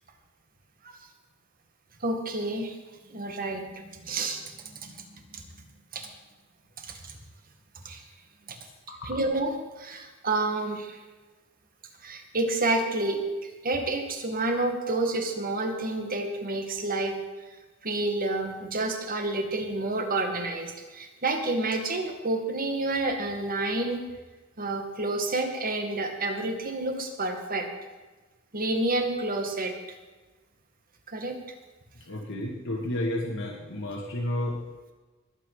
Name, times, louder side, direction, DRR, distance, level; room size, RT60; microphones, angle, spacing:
voice 1, 2.0-2.8 3.1-4.4 4.8-5.4 5.9-6.1 6.9-7.1 7.8-8.0 8.5-8.6 9.0-11.0 12.0-13.2 13.6-17.2 17.8-24.0 24.6-27.7 28.5-29.7 31.1-31.4, right 2 dB, 45° right, 4 dB, 2.1 m, -29 dB
voice 2, 8.9-9.2 32.0-34.6, left 1 dB, 65° left, -1 dB, 2.0 m, -32 dB
20.5 x 8.6 x 5.0 m, 1.2 s
head